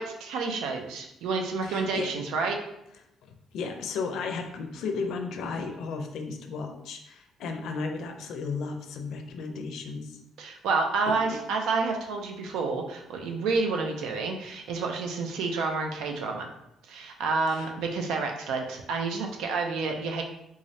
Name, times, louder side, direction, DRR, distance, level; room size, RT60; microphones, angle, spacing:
voice 1, 0.0-2.6 10.4-16.5 16.9-20.2, right 4 dB, 90° right, 3 dB, 0.6 m, -29 dB
voice 2, 1.6-2.1 3.2-10.2 11.1-11.2 17.5-17.7, left 4 dB, 70° left, 5 dB, 0.5 m, -34 dB
3.6 x 3.2 x 2.7 m, 0.82 s
cardioid pair, 150°, 0 cm